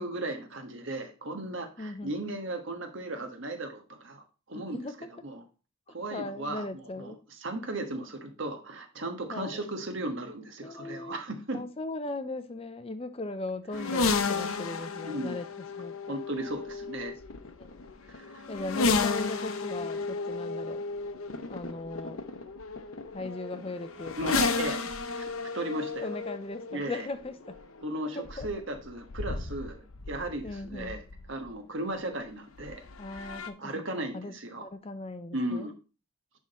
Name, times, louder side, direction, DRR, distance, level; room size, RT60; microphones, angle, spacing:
voice 1, 0.0-4.2 4.5-4.8 5.2-5.4 5.9-6.6 7.0-7.1 7.4-11.6 15.0-15.4 16.1-17.1 18.1-18.4 24.2-24.8 25.5-26.2 26.7-27.1 27.8-31.0 31.3-32.8 33.2-33.3 33.6-34.7 35.3-35.7, right 1 dB, 55° right, 1.4 m, -36 dB
voice 2, 1.8-2.1 4.5-5.1 5.9-7.2 9.3-9.7 10.6-11.2 11.5-16.2 17.6-17.7 18.5-20.8 21.5-22.2 23.1-24.4 26.0-27.6 28.1-28.5 30.4-31.0 33.0-35.7, left 2 dB, 25° left, 0.5 m, -38 dB
sound 1, 13.7-31.5 32.6-33.5, left 4 dB, 70° left, 0.8 m, -33 dB
10.5 x 3.8 x 4.2 m
head